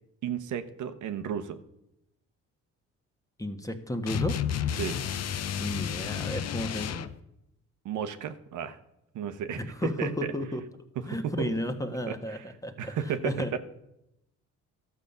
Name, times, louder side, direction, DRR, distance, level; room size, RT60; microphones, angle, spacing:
voice 1, 0.2-1.6 4.8-5.0 7.8-8.8 9.1-10.3 11.1-11.5 12.1-12.4 12.8-13.6, right 8 dB, 75° right, 9 dB, 1.0 m, -33 dB
voice 2, 3.4-4.7 5.6-7.0 9.6-10.6 11.0-13.0 13.2-13.5, equal, 10° left, 7 dB, 1.3 m, -33 dB
sound 1, 4.1-7.2, left 9 dB, 55° left, 0.7 m, -31 dB
12.5 x 7.2 x 6.7 m, 0.85 s
cardioid pair, 90°, 30 cm